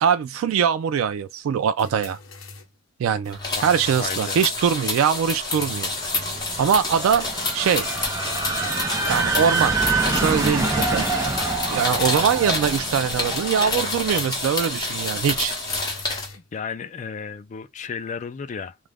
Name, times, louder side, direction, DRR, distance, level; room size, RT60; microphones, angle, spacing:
voice 1, 0.0-2.2 3.0-5.9 6.6-7.3 7.5-7.9 9.1-9.7 10.0-11.0 11.7-15.5, right 7 dB, 85° right, 0.3 m, -22 dB
sound 1, 1.8-2.8 3.2-4.2 4.5-4.6 5.5-6.8 7.9-9.2 10.2-11.3 11.8-12.6 13.7-14.7 15.6-16.5, left 3 dB, 80° left, 0.7 m, -41 dB
sound 2, 3.3-16.3, left 2 dB, 20° left, 0.9 m, -28 dB
voice 2, 3.5-4.5 16.5-18.8, left 6 dB, 35° left, 0.3 m, -33 dB
sound 3, 5.7-15.5, right 3 dB, 15° right, 0.5 m, -27 dB
2.4 x 2.1 x 3.3 m
head